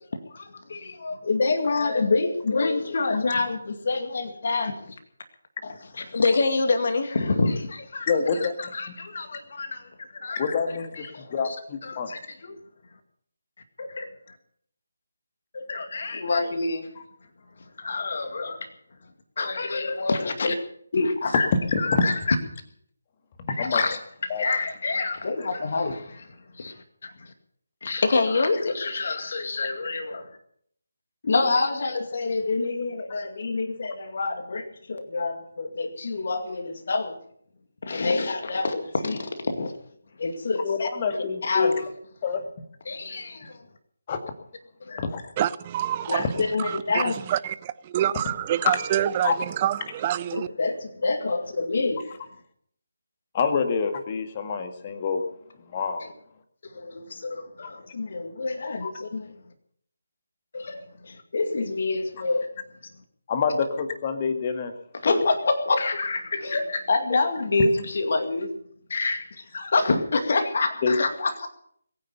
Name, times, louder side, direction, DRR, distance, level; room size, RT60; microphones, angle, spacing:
voice 1, 0.3-4.9 5.6-8.1 8.4-10.5 11.0-11.6 11.8-12.6 13.8-14.1 15.5-16.9 17.8-18.7 19.4-20.6 20.9-21.5 21.8-22.4 23.6-24.0 24.4-27.3 27.8-30.3 31.2-37.2 37.8-39.7 40.2-41.9 42.9-43.7 44.8-45.0 46.1-47.2 50.3-52.0 56.0-56.1 56.7-59.3 60.5-62.5 64.9-68.5 68.9-71.5, left 3 dB, 45° left, 2.2 m, -27 dB
voice 2, 8.1-8.5 10.3-12.1 21.9-22.1 23.4-23.8 24.3-24.5 40.6-41.7 42.2-42.4 44.1-44.2 45.0-45.2 49.2-49.3 53.3-55.2 55.7-56.0 58.8-58.9 63.3-64.7 65.1-65.2 70.8-71.0, left 5 dB, 25° left, 1.8 m, -26 dB
voice 3, 45.4-50.5, right 11 dB, 25° right, 0.6 m, -27 dB
21.5 x 9.7 x 6.9 m
figure-of-eight pair, 150°, 0 cm